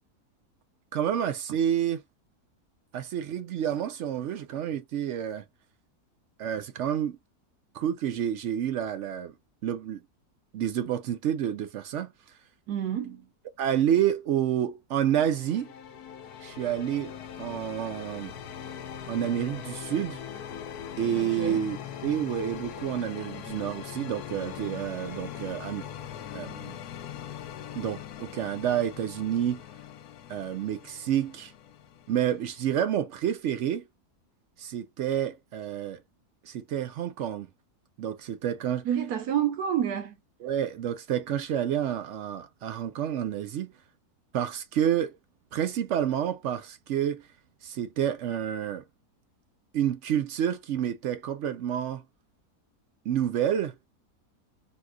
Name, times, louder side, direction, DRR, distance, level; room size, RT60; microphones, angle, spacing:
voice 1, 0.9-2.0 2.9-5.4 6.4-7.2 7.7-9.3 9.6-10.0 10.5-12.1 13.6-15.7 16.4-17.1 17.4-18.3 19.1-20.2 21.0-25.9 26.3-26.7 27.8-29.6 30.3-31.5 32.1-33.8 34.6-36.0 36.4-37.5 38.0-38.9 40.4-43.7 44.3-45.1 45.5-47.2 47.6-48.8 49.7-52.0 53.1-53.9, right 10 dB, 70° right, 0.7 m, -29 dB
voice 2, 12.7-13.2 21.2-21.6 38.8-40.2, right 9 dB, 90° right, 1.3 m, -29 dB
sound 1, 15.1-32.8, left 9 dB, 80° left, 1.2 m, -41 dB
4.1 x 2.4 x 2.2 m
omnidirectional pair, 1.6 m